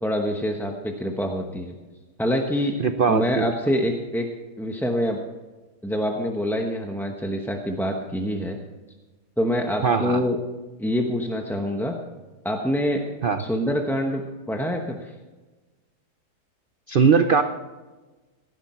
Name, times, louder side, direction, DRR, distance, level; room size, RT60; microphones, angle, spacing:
voice 1, 0.0-1.7 2.2-2.8 3.1-4.3 4.6-5.2 5.8-8.6 9.4-10.4 10.8-11.9 12.4-13.0 13.4-14.2 14.5-15.1, equal, ahead, 2 dB, 0.7 m, -25 dB
voice 2, 2.8-3.5 9.8-10.2 13.2-13.4 16.9-17.4, right 6 dB, 90° right, 8 dB, 0.4 m, -20 dB
17.0 x 11.5 x 4.3 m, 1.2 s
omnidirectional pair, 1.8 m